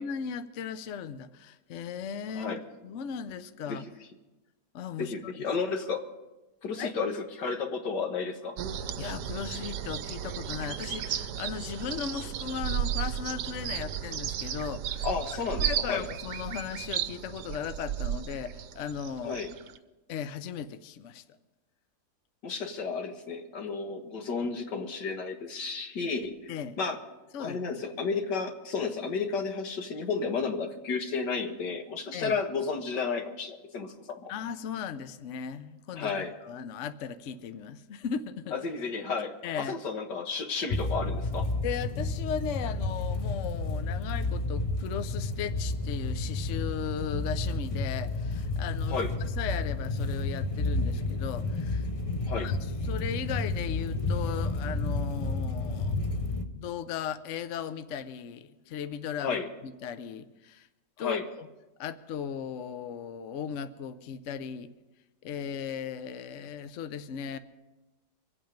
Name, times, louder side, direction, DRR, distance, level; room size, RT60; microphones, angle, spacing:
voice 1, 0.0-3.8 4.7-5.3 6.7-7.0 8.8-15.1 15.6-19.4 20.1-21.2 26.5-26.8 27.3-27.8 32.1-32.4 34.3-38.6 39.4-39.7 41.6-51.9 52.3-56.0 56.5-60.7 61.0-61.5 61.8-64.7 65.2-67.4, left 7 dB, 60° left, 11 dB, 0.9 m, -37 dB
voice 2, 5.0-6.1 6.6-8.6 15.0-16.1 19.2-19.5 22.4-26.5 26.8-27.0 27.4-34.3 35.9-36.3 38.5-41.5 48.9-49.1 52.3-52.5 59.2-59.5 61.0-61.3, left 5 dB, 90° left, 4 dB, 2.1 m, -32 dB
sound 1, 8.6-19.8, right 9 dB, 80° right, 1.3 m, -34 dB
sound 2, 40.7-56.4, left 2 dB, 40° left, 0.4 m, -31 dB
24.5 x 8.7 x 5.2 m, 1.1 s
omnidirectional pair, 1.8 m